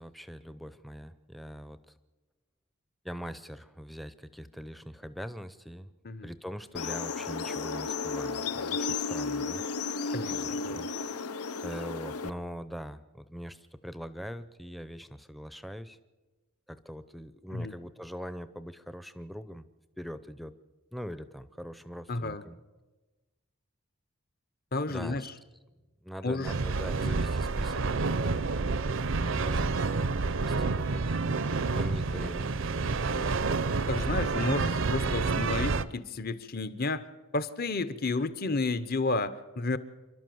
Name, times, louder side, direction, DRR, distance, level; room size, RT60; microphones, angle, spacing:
voice 1, 0.0-1.9 3.0-5.9 6.2-9.6 10.3-11.2 11.6-16.0 16.7-19.7 20.0-20.5 20.9-22.6 24.9-25.3 26.0-28.9 29.3-31.2 31.6-32.6, equal, ahead, 14 dB, 0.6 m, -42 dB
sound 1, 6.8-12.3, left 4 dB, 90° left, 0.7 m, -33 dB
voice 2, 10.1-10.8 17.5-17.7 22.1-22.4 24.7-25.3 26.2-26.5 27.0-27.1 33.9-37.1 37.3-39.8, left 3 dB, 40° left, 14 dB, 0.9 m, -31 dB
sound 2, 26.4-35.8, right 4 dB, 60° right, 0.6 m, -29 dB
28.0 x 12.0 x 7.8 m, 1.2 s
head